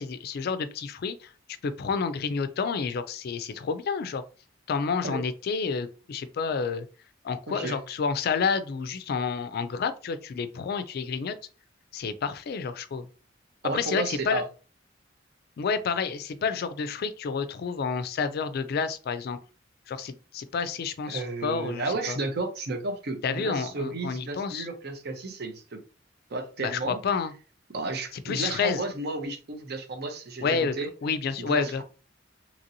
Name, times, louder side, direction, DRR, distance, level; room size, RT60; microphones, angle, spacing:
voice 1, 0.0-1.3 1.6-4.2 4.7-6.9 7.2-11.3 11.9-13.1 13.7-14.4 15.6-19.4 19.9-22.2 23.2-24.7 26.6-27.3 28.3-28.8 30.4-31.8, left 5 dB, 55° left, 0.3 m, -29 dB
voice 2, 7.5-7.8 13.6-14.4 21.1-25.8 26.3-27.0 27.7-30.9 31.4-31.8, right 3 dB, 55° right, 0.6 m, -32 dB
2.9 x 2.8 x 2.6 m
head